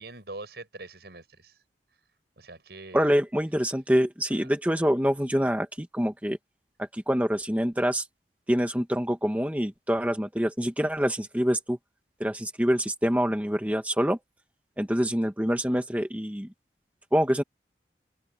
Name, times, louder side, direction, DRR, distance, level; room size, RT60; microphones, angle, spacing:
voice 1, 0.0-1.6 2.4-3.1 4.3-4.5, right 2 dB, 70° right, 5.6 m, -43 dB
voice 2, 2.9-6.4 6.9-8.0 8.5-11.8 12.2-14.2 14.8-16.5 17.1-17.4, equal, 10° right, 1.2 m, -25 dB
open air
head